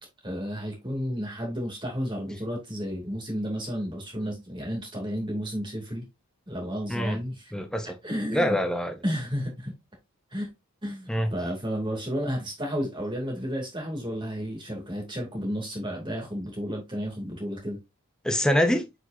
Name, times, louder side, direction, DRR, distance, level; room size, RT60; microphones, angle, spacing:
voice 1, 0.2-6.0 6.5-7.5 8.0-8.6 9.0-9.7 10.3-10.5 10.8-17.8, equal, 20° right, 2.5 m, -32 dB
voice 2, 7.5-8.0 8.3-9.0 11.1-11.3 18.2-18.9, equal, 5° left, 0.5 m, -25 dB
7.8 x 5.0 x 2.6 m
head